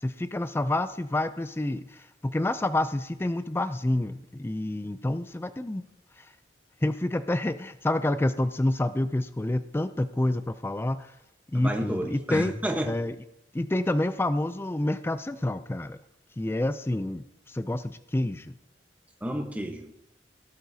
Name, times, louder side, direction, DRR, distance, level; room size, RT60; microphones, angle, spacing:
voice 1, 0.0-5.8 6.2-6.3 6.8-11.1 11.5-12.5 12.8-13.1 13.5-16.0 16.4-18.6, left 1 dB, 15° left, 11 dB, 0.4 m, -28 dB
voice 2, 11.5-12.9 19.2-19.9, right 1 dB, 10° right, 3 dB, 1.1 m, -31 dB
18.0 x 11.5 x 2.8 m, 0.86 s
head